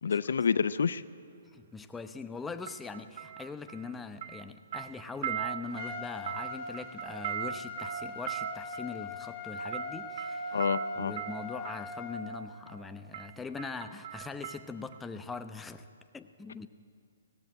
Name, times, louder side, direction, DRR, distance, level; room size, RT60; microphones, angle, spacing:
voice 1, 0.0-1.0 10.5-11.1, left 6 dB, 70° left, 15 dB, 0.5 m, -28 dB
sound 1, 0.7-0.9 2.7-4.0 4.2-11.9 12.7-12.9 13.1-15.0 15.3-15.4, right 11 dB, 50° right, 0.9 m, -40 dB
voice 2, 1.5-10.6 11.0-15.9 16.1-16.7, left 4 dB, 10° left, 8 dB, 0.7 m, -42 dB
Trumpet, 5.7-12.2, left 2 dB, 30° left, 2.6 m, -40 dB
17.5 x 15.0 x 9.7 m, 2.3 s
hypercardioid pair, 135°, 0 cm